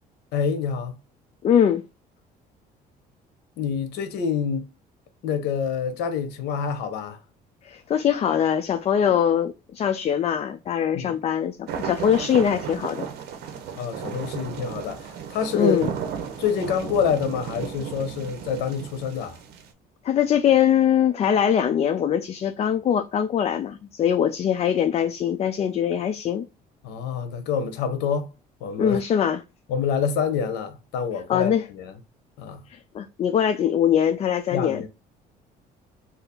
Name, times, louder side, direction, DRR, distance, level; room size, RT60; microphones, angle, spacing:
voice 1, 0.3-1.0 3.6-4.7 5.2-7.2 10.9-11.2 13.8-15.8 16.4-19.4 26.8-28.3 28.6-29.0 29.7-31.9 32.4-32.6 34.5-34.9, left 6 dB, 85° left, 0.8 m, -27 dB
voice 2, 1.4-1.8 7.6-13.1 15.5-15.9 20.0-26.4 28.8-29.4 31.3-31.7 32.7-34.8, left 9 dB, 40° left, 0.3 m, -22 dB
sound 1, 11.7-19.7, right 7 dB, 75° right, 0.8 m, -34 dB
2.7 x 2.4 x 3.5 m
cardioid pair, 110°, 17 cm